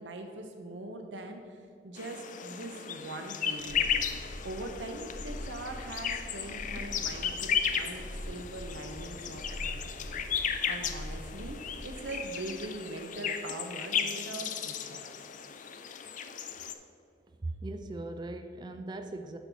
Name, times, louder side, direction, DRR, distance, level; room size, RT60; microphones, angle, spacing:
voice 1, 0.0-1.6 1.8-3.8 4.4-15.1, right 2 dB, 85° right, 4 dB, 0.8 m, -42 dB
sound 1, 2.0-16.7, left 7 dB, 45° left, 0.4 m, -35 dB
sound 2, 3.6-12.0, equal, 5° left, 1.4 m, -43 dB
voice 2, 17.4-19.4, right 2 dB, 25° right, 7 dB, 0.3 m, -39 dB
10.5 x 4.6 x 4.1 m, 2.4 s
head